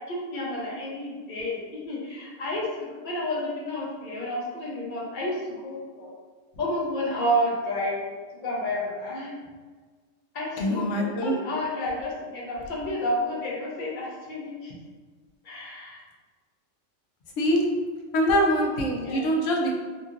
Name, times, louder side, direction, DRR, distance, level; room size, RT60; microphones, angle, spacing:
voice 1, 0.1-6.1 6.6-8.0 8.4-9.3 10.3-14.7 15.4-16.0 18.9-19.3, left 1 dB, 50° left, -4 dB, 0.6 m, -30 dB
voice 2, 10.6-11.3 17.4-17.6 18.1-19.8, equal, 75° left, 0 dB, 0.9 m, -24 dB
2.8 x 2.7 x 2.4 m, 1.5 s
omnidirectional pair, 1.3 m